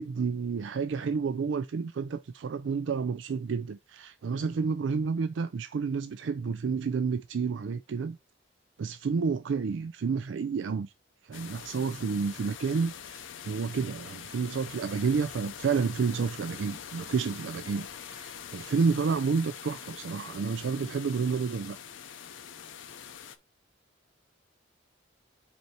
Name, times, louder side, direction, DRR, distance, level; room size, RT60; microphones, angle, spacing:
voice 1, 0.0-8.2 8.8-10.9 11.2-21.8, right 5 dB, 70° right, 0.4 m, -30 dB
sound 1, 11.3-23.4, left 8 dB, 80° left, 0.7 m, -44 dB
5.3 x 4.5 x 4.7 m
head